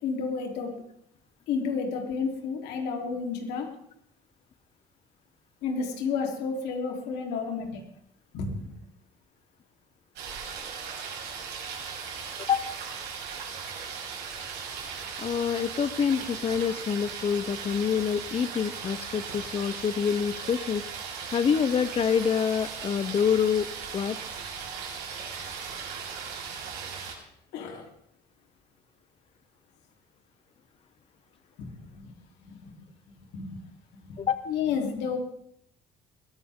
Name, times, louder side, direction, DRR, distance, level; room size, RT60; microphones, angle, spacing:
voice 1, 0.0-0.7 1.5-3.7 5.6-7.8 8.3-8.7 27.5-27.9 31.6-32.1 32.4-32.7 33.3-33.6 34.1-34.2 34.5-35.2, left 5 dB, 85° left, 1 dB, 3.6 m, -31 dB
sound 1, 10.2-27.1, right 6 dB, 85° right, 5.8 m, -38 dB
voice 2, 15.2-20.8 21.3-23.7 23.9-24.2 34.2-34.5, left 7 dB, 35° left, 12 dB, 0.7 m, -26 dB
21.5 x 14.5 x 3.7 m, 0.73 s
cardioid pair, 110°, 17 cm